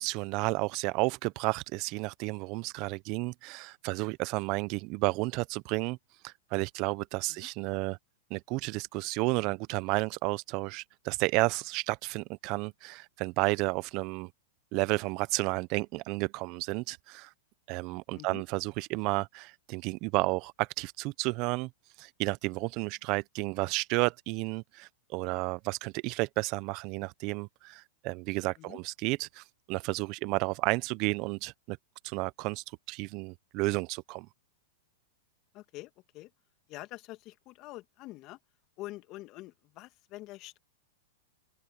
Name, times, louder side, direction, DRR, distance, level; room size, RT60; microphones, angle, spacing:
voice 1, 0.0-6.0 6.2-8.0 8.3-14.3 14.7-17.3 17.7-21.7 22.0-31.8 32.0-34.3, right 24 dB, 45° right, 1.0 m, -32 dB
voice 2, 35.5-36.3 36.7-38.4 38.8-40.6, left 18 dB, 40° left, 2.0 m, -46 dB
hypercardioid pair, 110°, 0 cm